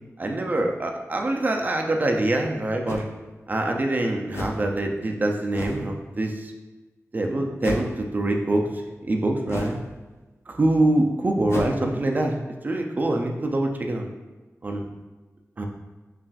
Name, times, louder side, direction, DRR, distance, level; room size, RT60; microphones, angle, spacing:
voice 1, 0.2-3.0 3.5-6.5 7.1-8.7 9.0-9.8 10.5-12.4 12.6-14.1 14.6-14.9 15.6-15.7, right 1 dB, 35° right, 2 dB, 0.4 m, -24 dB
sound 1, 1.9-2.0 2.9-3.1 4.3-4.7 5.5-5.9 7.6-8.0 9.5-9.9 11.5-11.8, left 2 dB, 55° left, 0.5 m, -33 dB
5.6 x 2.5 x 2.3 m, 1.2 s
wide cardioid pair, 110°, 5 cm